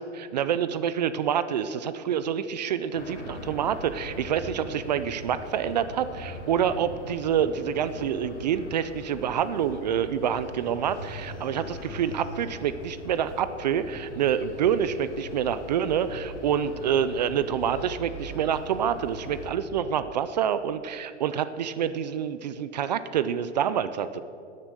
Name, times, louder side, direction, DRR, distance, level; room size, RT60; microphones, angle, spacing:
voice 1, 0.1-24.2, right 8 dB, 40° right, 13 dB, 0.4 m, -27 dB
sound 1, 2.9-19.5, left 1 dB, 90° left, 2.5 m, -41 dB
12.5 x 8.2 x 7.6 m, 2.6 s
hypercardioid pair, 155°, 35 cm